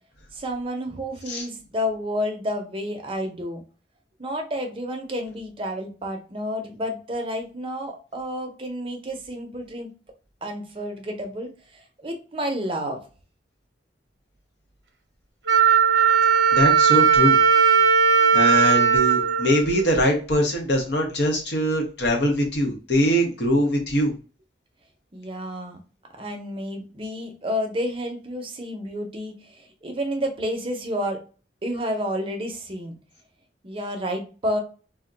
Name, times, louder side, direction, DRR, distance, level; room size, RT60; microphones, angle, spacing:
voice 1, 0.3-3.6 4.2-9.9 10.4-13.0 25.1-25.8 26.2-31.2 31.6-33.0 33.6-34.6, equal, 30° right, 3 dB, 0.6 m, -30 dB
Wind instrument woodwind instrument, 15.5-20.3, right 7 dB, 80° right, 0.7 m, -18 dB
voice 2, 16.5-17.4 18.3-24.1, equal, 70° left, 2 dB, 0.8 m, -22 dB
2.3 x 2.2 x 3.8 m, 0.35 s
head